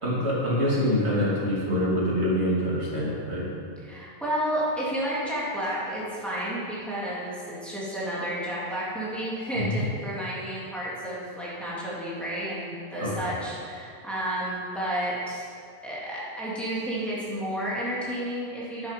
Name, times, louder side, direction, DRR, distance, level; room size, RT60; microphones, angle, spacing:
voice 1, 0.0-3.5 9.5-9.8 13.0-13.3, equal, 85° right, -6 dB, 2.7 m, -25 dB
voice 2, 3.8-15.4 15.8-18.9, right 1 dB, ahead, -8 dB, 2.6 m, -31 dB
9.6 x 7.8 x 5.2 m, 2.3 s
omnidirectional pair, 1.1 m